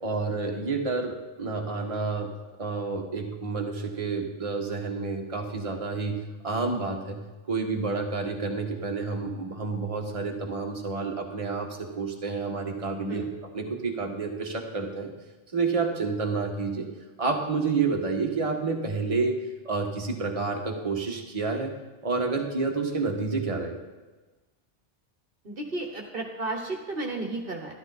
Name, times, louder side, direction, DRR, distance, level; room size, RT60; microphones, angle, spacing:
voice 1, 0.0-2.3 2.6-7.2 7.4-13.2 13.5-15.1 15.5-16.9 17.2-19.4 19.6-21.7 22.0-23.8, right 4 dB, 30° right, 1 dB, 1.5 m, -29 dB
voice 2, 25.4-27.7, right 2 dB, 50° right, 1 dB, 1.5 m, -33 dB
13.0 x 12.5 x 4.2 m, 1.2 s
omnidirectional pair, 1.2 m